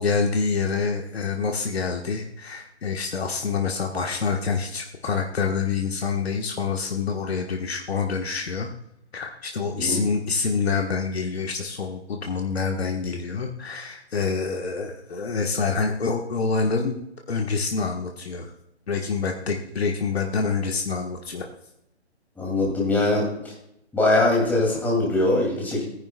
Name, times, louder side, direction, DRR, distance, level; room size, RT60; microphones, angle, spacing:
voice 1, 0.0-8.7 9.1-18.5 18.9-21.5, left 5 dB, 65° left, 2 dB, 1.4 m, -26 dB
voice 2, 22.4-23.3 23.9-25.8, left 2 dB, 5° left, -2 dB, 2.5 m, -22 dB
16.5 x 10.5 x 2.3 m, 0.82 s
figure-of-eight pair, 145°, 33 cm